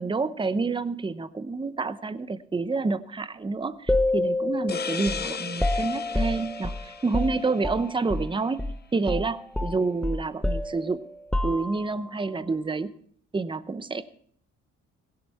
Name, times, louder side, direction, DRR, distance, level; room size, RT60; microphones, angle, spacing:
voice 1, 0.0-8.7 8.9-11.0 11.4-12.9 13.3-14.0, right 4 dB, 15° right, 14 dB, 0.7 m, -28 dB
sound 1, 3.9-8.3 8.6-8.8 9.1-12.0, left 2 dB, 5° left, 0.9 m, -28 dB
sound 2, 4.7-8.1, left 6 dB, 35° left, 0.8 m, -37 dB
16.5 x 11.5 x 4.3 m, 0.63 s
cardioid pair, 90°, 30 cm